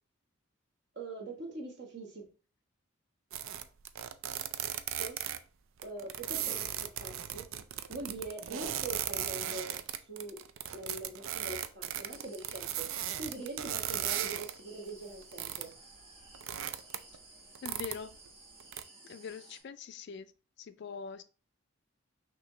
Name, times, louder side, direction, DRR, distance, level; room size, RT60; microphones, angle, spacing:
voice 1, 0.9-2.2 5.0-5.2 5.8-7.4 7.9-9.8 10.1-10.4 10.7-12.9 13.2-15.7, right 2 dB, 55° right, 1.3 m, -43 dB
sound 1, 3.3-5.4 5.8-14.6 14.9-15.7 16.0-17.2 17.5-18.3 18.6-18.8, right 10 dB, 75° right, 0.4 m, -37 dB
sound 2, 12.1-19.6, right 2 dB, 25° right, 1.3 m, -55 dB
voice 2, 17.6-18.2 19.0-20.3 20.6-21.2, left 6 dB, 55° left, 0.3 m, -43 dB
6.0 x 2.9 x 3.1 m
head